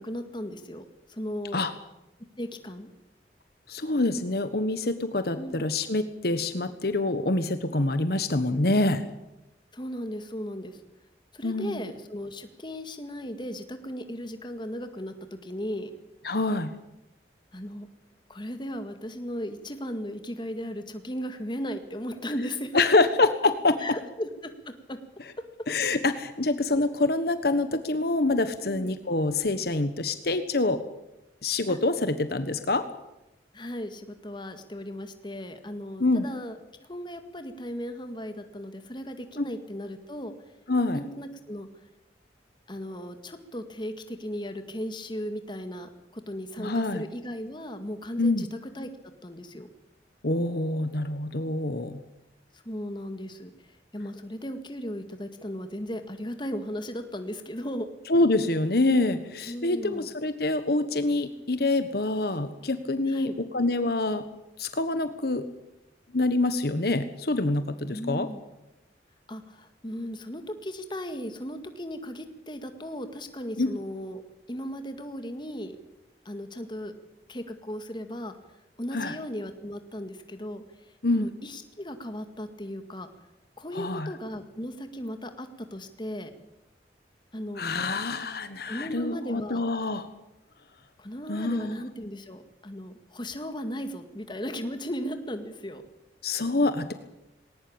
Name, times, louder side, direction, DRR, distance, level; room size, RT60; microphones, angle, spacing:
voice 1, 0.0-1.6 2.4-2.9 5.4-5.6 9.7-10.8 11.3-15.9 17.5-17.9 18.3-22.9 23.8-25.0 28.6-28.9 31.7-31.8 33.5-40.3 40.9-41.7 42.7-48.9 49.2-49.7 52.7-57.9 59.5-60.1 63.1-63.4 67.9-68.4 69.3-74.2 74.5-75.8 76.3-76.9 77.3-78.3 78.8-83.1 83.6-86.3 87.3-87.6 88.6-89.6 91.0-95.8, equal, 25° left, 8 dB, 2.0 m, -36 dB
voice 2, 3.7-9.0 11.4-11.8 16.2-16.7 22.7-23.8 25.7-30.8 31.4-32.8 36.0-36.2 39.4-39.5 40.7-41.0 46.6-47.0 48.2-48.5 50.2-52.0 58.1-64.2 64.6-65.5 66.1-68.3 73.6-73.7 78.9-79.2 81.0-81.3 83.7-84.1 87.6-90.1 91.3-91.7 96.2-96.9, left 2 dB, 60° left, 10 dB, 1.3 m, -26 dB
20.0 x 18.5 x 8.8 m, 0.94 s
head